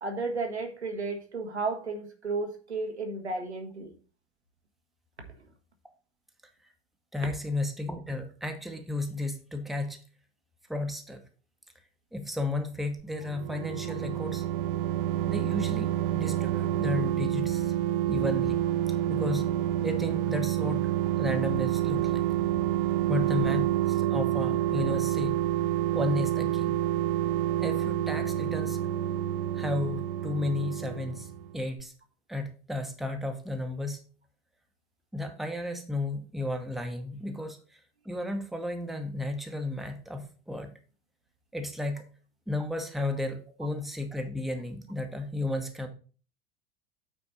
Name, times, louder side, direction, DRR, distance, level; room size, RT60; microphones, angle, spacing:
voice 1, 0.0-3.9, right 3 dB, 85° right, 4 dB, 1.4 m, -33 dB
voice 2, 7.1-10.0 10.7-11.2 12.1-14.4 15.3-17.7 18.1-18.6 19.1-19.5 19.8-20.8 21.2-22.3 23.1-25.4 25.9-26.8 27.6-28.8 29.5-31.3 31.5-31.9 32.3-34.0 35.1-37.8 38.0-40.7 41.5-42.0 42.5-45.9, left 2 dB, ahead, 5 dB, 0.9 m, -33 dB
sound 1, 13.0-31.5 31.8-31.9, right 12 dB, 55° right, 0.4 m, -28 dB
8.6 x 4.4 x 4.0 m, 0.39 s
figure-of-eight pair, 80°, 32 cm